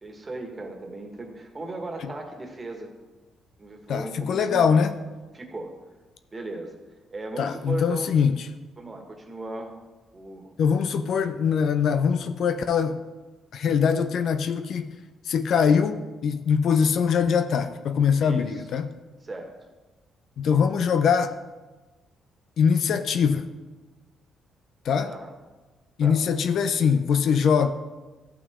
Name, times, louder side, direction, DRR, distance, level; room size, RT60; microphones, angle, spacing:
voice 1, 0.0-2.9 3.6-4.9 5.3-5.7 6.3-6.8 7.1-8.1 8.8-9.8 10.1-10.6 18.2-18.6 19.2-19.5 25.1-25.3 26.0-26.2, right 2 dB, 25° right, 3 dB, 1.7 m, -36 dB
voice 2, 3.9-4.9 7.4-8.4 10.6-13.0 13.5-14.9 15.3-18.9 20.4-21.3 22.6-23.5 24.8-25.1 26.0-27.7, left 6 dB, 65° left, 9 dB, 0.6 m, -22 dB
14.0 x 5.8 x 3.6 m, 1.2 s
cardioid pair, 90°, 0 cm